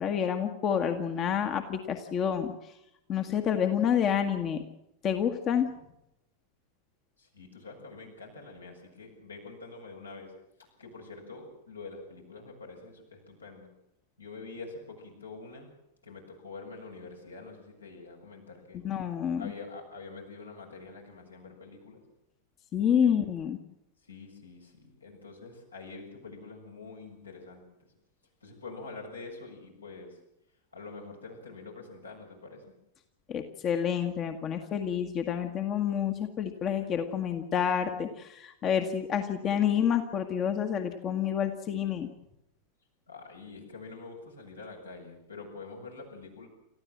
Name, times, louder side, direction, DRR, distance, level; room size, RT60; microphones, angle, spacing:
voice 1, 0.0-2.5 3.1-4.6 5.0-5.7 18.7-19.5 22.7-23.6 33.3-42.1, left 8 dB, 30° left, 6 dB, 1.7 m, -28 dB
voice 2, 7.2-10.3 10.8-13.7 14.2-15.7 16.0-18.8 19.4-22.0 23.0-23.2 24.1-27.7 28.4-30.1 30.7-32.6 43.1-46.5, left 3 dB, 80° left, 0 dB, 7.4 m, -46 dB
29.0 x 14.5 x 7.6 m, 0.84 s
figure-of-eight pair, 90°, 0 cm